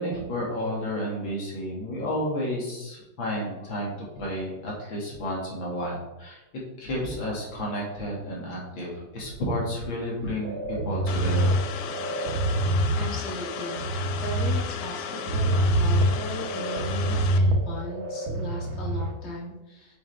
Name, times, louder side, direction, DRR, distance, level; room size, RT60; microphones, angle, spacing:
voice 1, 0.0-6.4 6.8-11.6, equal, 90° left, -3 dB, 2.9 m, -31 dB
sound 1, 10.4-19.1, right 1 dB, 85° right, 1.7 m, -26 dB
sound 2, 11.1-17.4, left 8 dB, 70° left, 1.1 m, -35 dB
voice 2, 12.6-20.0, equal, 35° left, -4 dB, 2.0 m, -37 dB
7.7 x 6.4 x 3.5 m, 0.97 s
omnidirectional pair, 2.1 m